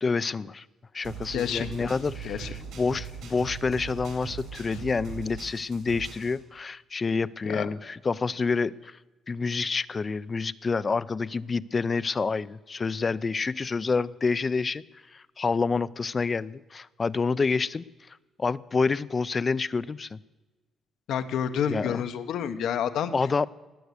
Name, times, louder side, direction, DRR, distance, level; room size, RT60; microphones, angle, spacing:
voice 1, 0.0-0.6 0.9-8.9 9.3-14.8 15.1-17.8 18.4-20.2 21.7-22.0 23.1-23.5, left 4 dB, 35° left, 18 dB, 0.5 m, -28 dB
sound 1, 1.0-6.3, right 6 dB, 80° right, 4.7 m, -40 dB
voice 2, 1.3-1.9 2.2-2.5 7.4-7.7 21.1-23.1, left 8 dB, 80° left, 9 dB, 1.1 m, -29 dB
19.5 x 6.6 x 8.3 m, 1.3 s
cardioid pair, 90°, 0 cm